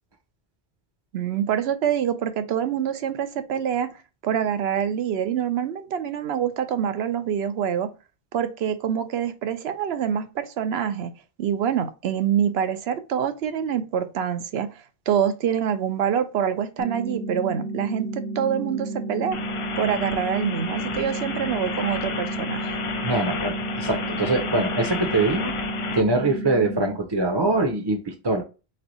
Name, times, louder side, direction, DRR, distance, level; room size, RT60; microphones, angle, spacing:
voice 1, 1.1-3.9 4.2-7.9 8.3-11.1 11.4-14.7 15.1-19.4 19.8-22.8, right 8 dB, 85° right, 0.9 m, -25 dB
sound 1, 16.8-26.8, right 2 dB, 25° left, 0.6 m, -32 dB
sound 2, 19.3-26.0, left 5 dB, 60° left, 0.3 m, -32 dB
voice 2, 23.0-25.5 25.9-28.4, right 2 dB, 30° right, 0.5 m, -23 dB
3.5 x 3.2 x 3.9 m
omnidirectional pair, 1.0 m